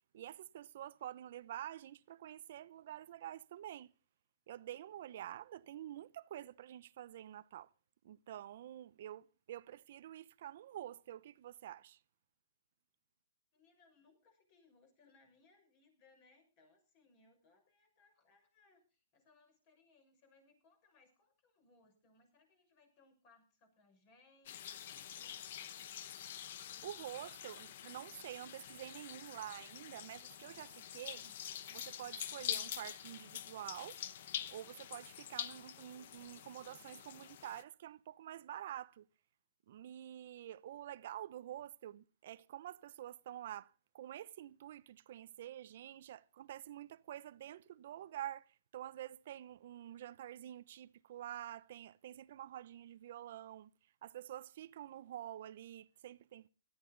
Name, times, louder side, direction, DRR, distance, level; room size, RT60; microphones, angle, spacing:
voice 1, 0.1-3.9 4.5-7.7 8.0-12.0 26.8-31.3 31.7-34.0 34.5-39.0 39.7-48.5 48.7-53.7 54.0-56.5, right 12 dB, 50° right, 0.9 m, -48 dB
voice 2, 13.5-25.9, left 3 dB, 30° left, 6.6 m, -69 dB
sound 1, 24.5-37.6, left 10 dB, 50° left, 1.0 m, -46 dB
18.5 x 13.5 x 4.1 m
hypercardioid pair, 160°, 0 cm